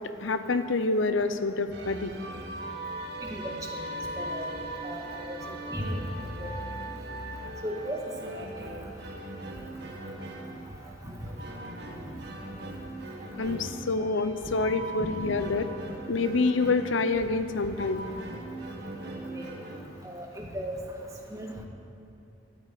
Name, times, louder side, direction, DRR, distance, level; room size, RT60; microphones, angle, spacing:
voice 1, 0.2-2.1 13.3-15.7 16.1-18.1, left 3 dB, 85° left, 10 dB, 0.7 m, -27 dB
sound 1, 1.7-19.8, right 1 dB, 60° right, 1.8 m, -39 dB
voice 2, 4.2-4.6 4.8-5.4 5.7-6.0 6.4-6.5 7.6-8.0 8.3-8.8 15.0-15.1 19.3-19.5 20.0-20.8 21.3-21.5, equal, 15° right, -1 dB, 1.8 m, -36 dB
13.5 x 8.3 x 9.3 m, 2.8 s
head